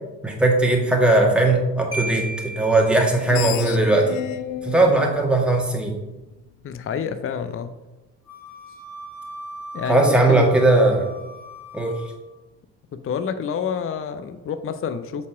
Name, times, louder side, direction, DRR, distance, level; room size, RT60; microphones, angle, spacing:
voice 1, 0.2-4.2 4.6-5.9 9.9-11.1 11.7-12.0, right 2 dB, ahead, -1 dB, 1.8 m, -18 dB
Marimba xylophone, 1.9-3.7, right 1 dB, 25° right, 2.0 m, -33 dB
Screech, 3.0-6.2, left 12 dB, 70° left, 0.5 m, -33 dB
voice 2, 6.6-7.7 9.7-10.5 10.8-11.0 12.9-15.3, left 7 dB, 30° left, 10 dB, 0.6 m, -29 dB
Wind instrument woodwind instrument, 8.3-12.3, right 1 dB, 45° left, 1.5 m, -39 dB
7.1 x 4.2 x 4.7 m, 1.1 s
figure-of-eight pair, 45°, 47 cm